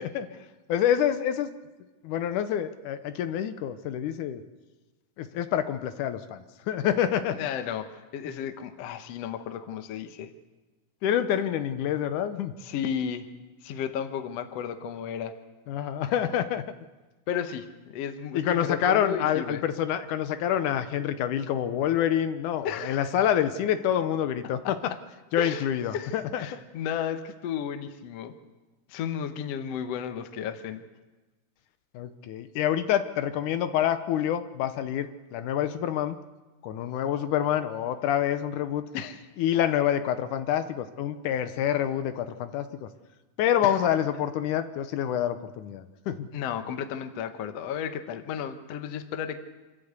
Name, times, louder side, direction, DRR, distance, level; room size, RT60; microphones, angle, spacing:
voice 1, 0.0-1.5 2.0-4.4 5.2-7.4 11.0-12.5 15.7-16.6 18.3-24.8 25.3-26.5 31.9-36.2 36.6-38.8 39.4-42.9 43.4-46.3, left 10 dB, 80° left, 10 dB, 2.3 m, -27 dB
voice 2, 7.3-10.3 12.6-13.3 13.6-15.3 17.3-19.6 22.6-23.3 24.4-24.7 25.4-25.7 25.9-28.3 28.9-30.8 38.9-39.2 43.6-43.8 46.3-49.4, left 8 dB, 65° left, 8 dB, 1.9 m, -33 dB
26.0 x 13.5 x 8.1 m, 1.2 s
omnidirectional pair, 3.6 m